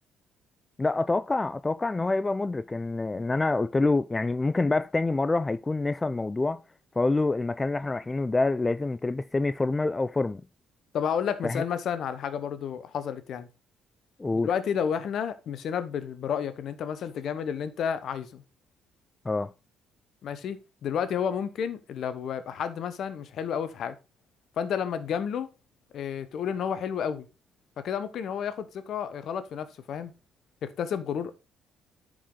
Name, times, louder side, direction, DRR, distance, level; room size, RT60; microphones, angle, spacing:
voice 1, 0.8-6.6 7.0-10.4 11.4-11.6 14.2-14.5 19.3-19.5, left 3 dB, 25° left, 0.4 m, -26 dB
voice 2, 10.9-13.5 14.4-18.4 20.2-23.9 24.6-25.5 25.9-27.3 27.8-30.1 30.6-31.3, left 8 dB, 60° left, 1.0 m, -31 dB
10.0 x 4.9 x 3.8 m
hypercardioid pair, 50°, 0 cm